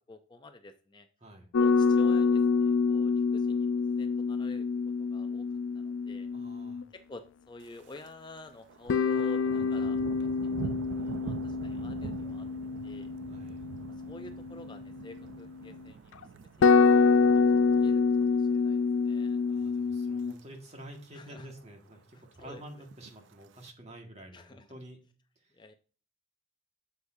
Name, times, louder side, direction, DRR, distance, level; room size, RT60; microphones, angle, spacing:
voice 1, 0.0-1.1 1.6-3.7 4.0-4.7 5.0-5.5 5.8-6.3 6.9-10.3 10.9-12.5 12.8-13.1 14.1-16.2 17.2-17.4 17.8-18.0 18.3-19.4 21.1-21.5 22.1-22.6 24.3-24.6 25.6-25.7, left 1 dB, 25° left, 7 dB, 0.4 m, -49 dB
sound 1, 1.5-6.8 8.9-15.5 16.2-16.3 16.6-20.3, left 4 dB, 90° left, 0.4 m, -26 dB
voice 2, 6.3-6.8 13.3-13.6 19.5-25.0 25.4-25.5, right 1 dB, 35° right, 2 dB, 1.6 m, -49 dB
Thunder, 7.6-8.1 8.4-18.8 19.2-19.5 20.0-20.4 20.7-20.8 20.9-21.0 21.4-22.0 22.8-23.7, right 6 dB, 65° right, 0.3 m, -44 dB
8.1 x 6.9 x 2.6 m, 0.39 s
head